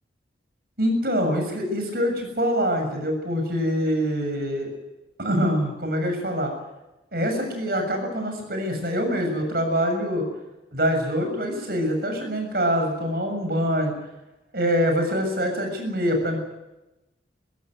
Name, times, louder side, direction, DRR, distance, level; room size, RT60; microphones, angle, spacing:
voice 1, 0.8-4.7 5.2-6.5 7.1-10.2 10.7-13.9 14.5-16.4, equal, 55° right, 4 dB, 7.0 m, -24 dB
22.5 x 16.0 x 9.5 m, 0.98 s
head